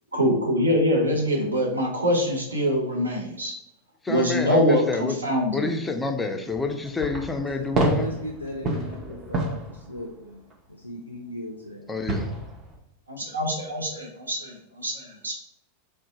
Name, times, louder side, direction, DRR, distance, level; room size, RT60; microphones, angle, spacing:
voice 1, 0.1-3.5 4.1-5.7 13.1-15.3, equal, 75° right, 0 dB, 0.6 m, -24 dB
voice 2, 4.0-5.2 5.5-8.1 11.9-12.3, left 3 dB, 10° left, 4 dB, 0.4 m, -28 dB
sound 1, 6.5-10.5 12.1-12.8, right 1 dB, 25° right, 0.6 m, -29 dB
voice 3, 7.4-12.5, left 1 dB, 85° left, 1 dB, 0.3 m, -38 dB
2.6 x 2.1 x 3.8 m, 0.79 s
figure-of-eight pair, 90°, 0 cm